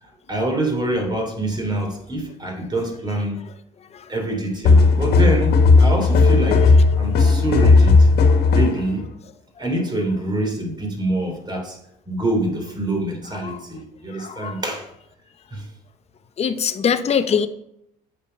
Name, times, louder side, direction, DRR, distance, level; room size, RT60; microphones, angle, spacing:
voice 1, 0.0-3.4 4.1-8.1 8.5-9.1 9.6-11.8 12.1-14.9 15.5-15.7, right 1 dB, 25° right, 2 dB, 3.1 m, -25 dB
sound 1, 4.6-8.9, left 3 dB, 75° left, 1.7 m, -14 dB
voice 2, 14.2-14.5 16.4-17.5, left 7 dB, 40° left, 9 dB, 0.8 m, -22 dB
8.5 x 6.9 x 5.3 m, 0.78 s
cardioid pair, 110°, 17 cm